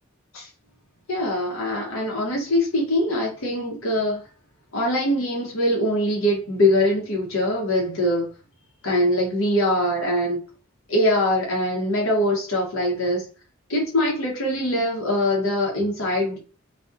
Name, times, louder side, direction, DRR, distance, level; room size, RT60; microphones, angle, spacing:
voice 1, 1.1-4.2 4.7-8.3 8.8-10.4 10.9-13.2 13.7-16.4, left 1 dB, 75° left, 0.8 m, -23 dB
2.4 x 2.1 x 2.5 m
head